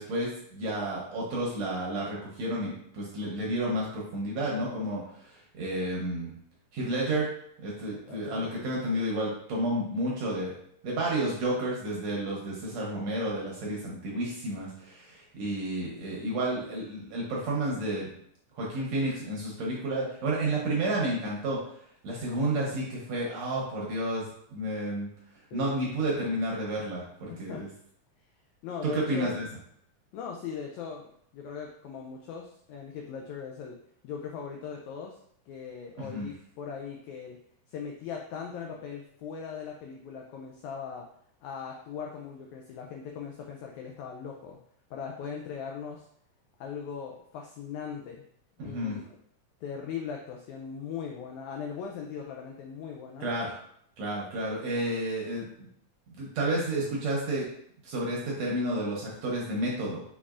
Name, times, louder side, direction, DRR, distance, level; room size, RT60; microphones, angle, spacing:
voice 1, 0.0-6.3 6.7-7.3 7.6-10.5 10.8-18.1 18.6-21.6 22.0-25.1 25.5-27.7 28.8-29.5 36.0-36.3 48.6-49.0 53.2-53.6 54.0-55.7 56.1-57.4 57.8-60.0, right 1 dB, 70° right, -3 dB, 1.8 m, -31 dB
voice 2, 8.1-8.5 25.5-25.7 27.3-27.7 28.6-29.4 30.1-33.8 34.0-35.2 35.5-37.4 37.7-41.1 41.4-44.6 44.9-46.1 46.6-48.2 48.6-49.0 49.6-53.3, left 6 dB, 85° left, 1 dB, 1.6 m, -39 dB
6.2 x 3.5 x 2.4 m, 0.68 s
omnidirectional pair, 3.8 m